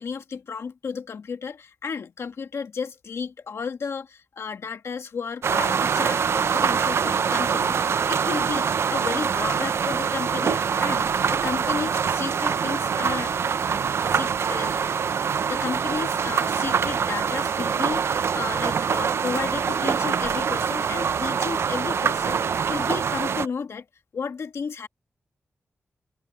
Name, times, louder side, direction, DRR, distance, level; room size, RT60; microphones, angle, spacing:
voice 1, 0.0-13.3 14.1-23.8 24.1-24.9, left 5 dB, 75° left, 1.6 m, -33 dB
sound 1, 5.4-23.5, right 6 dB, 70° right, 0.4 m, -24 dB
wide cardioid pair, 105°, 5 cm